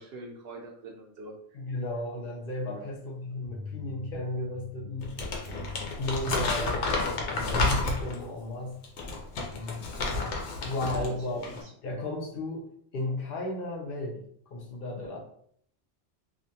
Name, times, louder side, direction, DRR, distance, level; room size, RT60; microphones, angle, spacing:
voice 1, 0.0-1.6 2.7-2.8 10.9-11.6, right 2 dB, 65° right, 0 dB, 0.7 m, -44 dB
voice 2, 1.5-5.1 5.8-8.8 9.5-11.4 11.8-12.7 12.9-15.2, left 2 dB, 60° left, 0 dB, 0.7 m, -35 dB
sound 1, 3.4-10.2, left 2 dB, 10° right, 0.6 m, -46 dB
Crumpling crinkling, 5.0-8.2 8.8-11.1 11.4-11.6, left 3 dB, 90° left, 0.9 m, -30 dB
2.4 x 2.2 x 2.7 m, 0.66 s
omnidirectional pair, 1.2 m